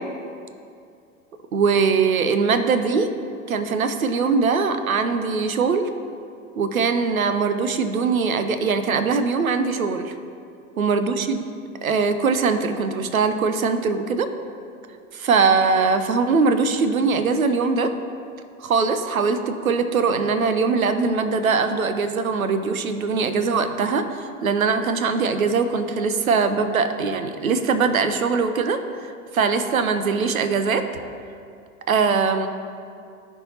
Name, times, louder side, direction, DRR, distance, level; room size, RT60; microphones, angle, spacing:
voice 1, 1.5-3.1 3.5-5.8 6.6-10.1 10.8-11.4 11.8-14.3 15.1-17.9 18.6-30.8 31.9-32.5, right 5 dB, 75° right, 9 dB, 0.6 m, -21 dB
13.5 x 4.6 x 2.8 m, 2.4 s
figure-of-eight pair, 80°, 42 cm